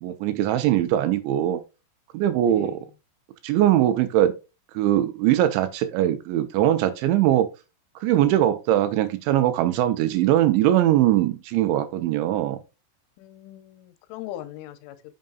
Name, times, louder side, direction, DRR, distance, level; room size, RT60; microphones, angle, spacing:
voice 1, 0.0-1.6 2.1-2.8 3.4-4.3 4.7-7.5 8.0-12.6, right 12 dB, 80° right, 2.9 m, -21 dB
voice 2, 2.4-2.8 13.2-15.1, left 13 dB, 80° left, 3.3 m, -40 dB
9.3 x 6.6 x 2.3 m
omnidirectional pair, 5.6 m